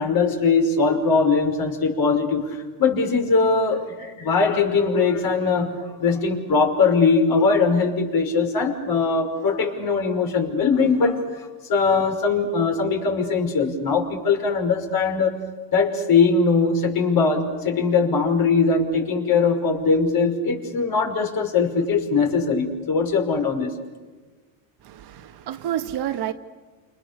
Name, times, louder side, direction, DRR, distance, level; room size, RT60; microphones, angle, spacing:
voice 1, 0.0-11.2 11.7-15.4 15.7-23.7, left 4 dB, 45° left, 3 dB, 5.7 m, -21 dB
voice 2, 24.8-26.3, right 11 dB, 55° right, 6 dB, 2.1 m, -29 dB
29.5 x 28.5 x 6.9 m, 1.3 s
supercardioid pair, 100°, 47 cm